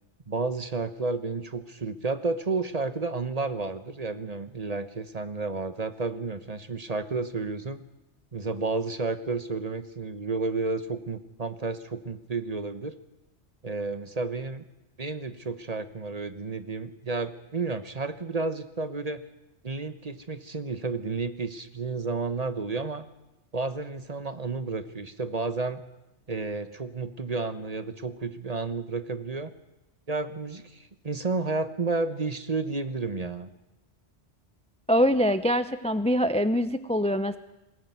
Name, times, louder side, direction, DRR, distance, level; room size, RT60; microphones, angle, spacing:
voice 1, 0.3-7.8 8.3-13.0 13.6-14.6 15.0-19.2 19.6-23.1 23.5-25.8 26.3-29.5 30.1-33.5, right 3 dB, 35° right, 11 dB, 1.2 m, -31 dB
voice 2, 34.9-37.4, equal, 5° left, 12 dB, 0.6 m, -24 dB
21.0 x 18.5 x 9.4 m, 0.97 s
omnidirectional pair, 1.2 m